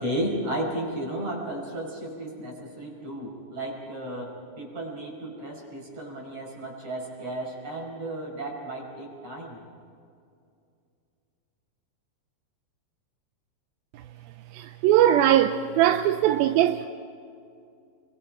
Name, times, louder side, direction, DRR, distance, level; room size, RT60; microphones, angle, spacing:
voice 1, 0.0-9.6, right 1 dB, 40° right, -1 dB, 6.2 m, -34 dB
voice 2, 14.5-16.9, right 11 dB, 80° right, 8 dB, 2.2 m, -21 dB
29.5 x 23.5 x 5.1 m, 2.4 s
omnidirectional pair, 4.7 m